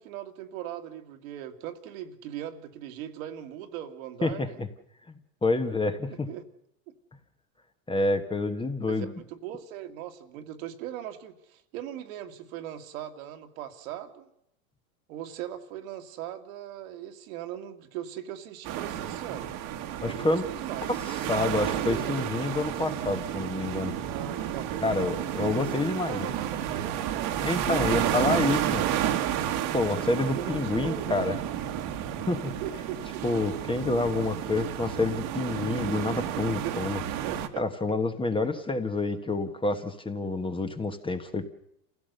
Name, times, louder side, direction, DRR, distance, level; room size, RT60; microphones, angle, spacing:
voice 1, 0.0-4.6 6.1-6.4 8.9-14.3 15.1-19.5 20.0-21.2 21.6-22.2 24.1-24.9 25.5-29.3 30.3-31.2 32.6-33.2 36.6-36.8 37.2-37.6, right 11 dB, 65° right, 5 dB, 2.2 m, -39 dB
voice 2, 4.2-4.7 5.1-6.3 7.9-9.1 20.0-20.4 21.0-24.0 24.8-26.3 27.4-28.8 29.7-31.3 32.2-32.5 33.2-37.0 37.6-41.4, left 2 dB, 10° left, 7 dB, 1.3 m, -28 dB
sound 1, 18.6-37.5, right 10 dB, 50° right, 1.8 m, -31 dB
27.5 x 16.0 x 6.8 m, 0.78 s
supercardioid pair, 120°, 43 cm